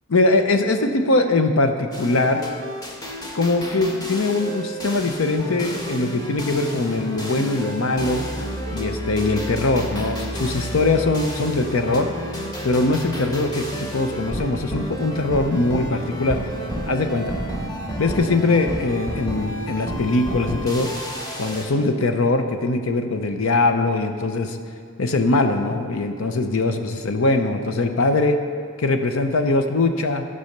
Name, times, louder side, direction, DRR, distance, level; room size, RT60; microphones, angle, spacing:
voice 1, 0.1-2.4 3.3-8.2 8.7-12.1 12.6-16.4 16.9-17.3 18.0-20.9 21.4-24.6 25.0-28.4 28.8-30.3, left 2 dB, 70° left, 6 dB, 0.7 m, -21 dB
sound 1, 1.9-21.6, equal, 20° left, 1.3 m, -31 dB
13.5 x 5.5 x 6.6 m, 2.2 s
head